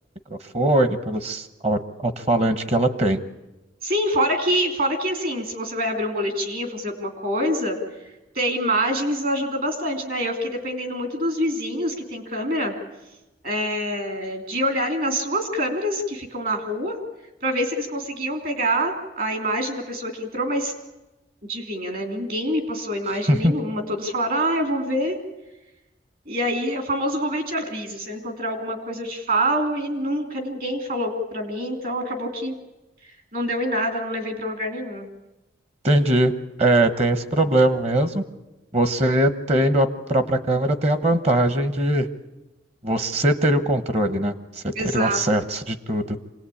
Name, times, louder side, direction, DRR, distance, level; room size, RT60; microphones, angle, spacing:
voice 1, 0.5-3.2 23.3-23.5 35.8-36.3 36.6-38.2 38.7-42.1 42.8-44.3 44.9-46.2, right 1 dB, 35° right, 11 dB, 1.1 m, -21 dB
voice 2, 3.8-7.8 8.3-12.7 13.4-17.0 17.4-20.7 21.5-25.2 26.3-32.5 33.3-35.1 44.7-45.4, equal, 50° right, 5 dB, 3.2 m, -26 dB
25.5 x 18.5 x 8.6 m, 1.0 s
head